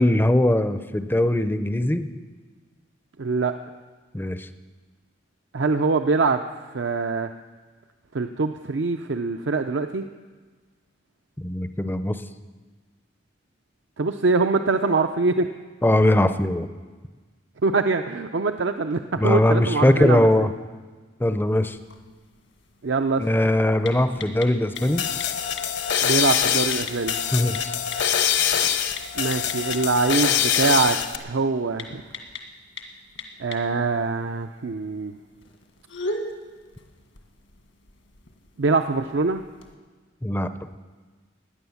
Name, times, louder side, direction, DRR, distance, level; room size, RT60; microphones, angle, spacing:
voice 1, 0.0-2.1 4.1-4.5 11.4-12.2 15.8-16.7 19.2-20.5 21.2-21.8 23.2-25.0 27.3-27.7 40.2-40.5, left 1 dB, 10° left, 10 dB, 0.5 m, -20 dB
voice 2, 3.2-3.5 5.5-6.4 6.7-7.3 8.1-10.1 14.0-15.5 17.6-20.5 22.8-23.2 26.0-27.2 29.2-32.0 33.4-35.1 38.6-39.4, right 3 dB, 65° right, 7 dB, 0.6 m, -23 dB
sound 1, 21.5-39.7, left 2 dB, 80° left, 1.8 m, -41 dB
sound 2, 24.8-31.2, left 9 dB, 60° left, 1.0 m, -24 dB
17.0 x 10.0 x 7.1 m, 1.4 s
head